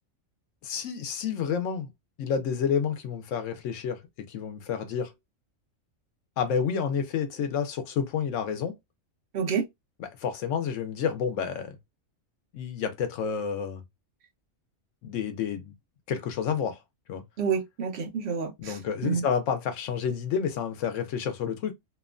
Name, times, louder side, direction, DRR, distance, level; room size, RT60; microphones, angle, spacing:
voice 1, 0.6-1.9 2.2-4.0 4.3-5.1 6.4-8.7 10.0-11.7 12.5-13.8 15.0-15.7 16.1-16.8 17.1-17.2 18.6-21.7, left 7 dB, 75° left, 1.0 m, -29 dB
voice 2, 17.4-19.2, right 6 dB, 60° right, 0.8 m, -29 dB
2.9 x 2.1 x 2.4 m
omnidirectional pair, 1.3 m